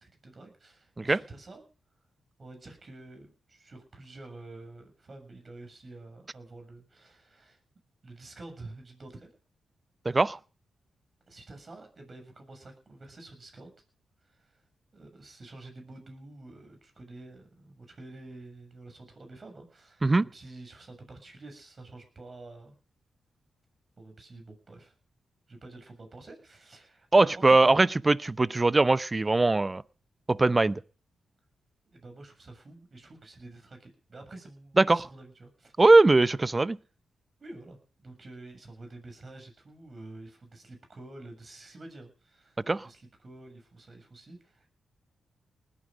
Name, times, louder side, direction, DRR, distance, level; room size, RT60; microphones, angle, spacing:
voice 1, 0.0-1.6 2.4-7.6 8.0-9.4 11.3-13.7 14.2-14.6 14.9-22.7 24.0-24.9 25.5-27.8 31.9-35.7 36.3-36.4 37.4-44.7, right 2 dB, 45° right, 6 dB, 7.2 m, -48 dB
voice 2, 10.1-10.4 20.0-20.2 27.1-29.8 30.3-30.8 34.8-35.0 35.8-36.8 42.7-42.9, right 2 dB, 30° right, 18 dB, 0.7 m, -21 dB
20.0 x 10.0 x 5.1 m, 0.37 s
supercardioid pair, 45°, 0 cm